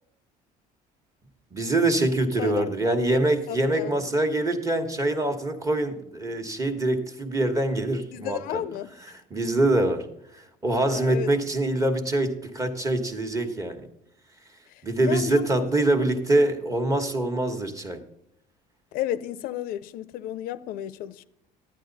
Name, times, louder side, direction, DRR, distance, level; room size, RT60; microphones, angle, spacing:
voice 1, 1.5-8.6 9.3-10.1 10.3-13.9 14.8-18.0, right 2 dB, 20° right, 1.2 m, -24 dB
voice 2, 2.4-3.2 3.5-4.0 8.1-8.9 10.9-11.3 14.7-15.7 18.9-21.2, left 11 dB, 70° left, 0.5 m, -33 dB
11.0 x 9.8 x 4.0 m
cardioid pair, 145°, 16 cm